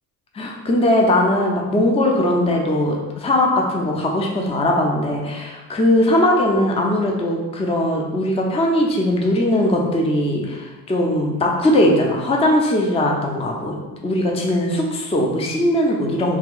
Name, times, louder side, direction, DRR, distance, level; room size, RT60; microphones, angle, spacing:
voice 1, 0.3-13.7 14.0-16.4, left 1 dB, 15° left, 0 dB, 0.5 m, -19 dB
2.9 x 2.3 x 3.8 m, 1.2 s
hypercardioid pair, 60°, 49 cm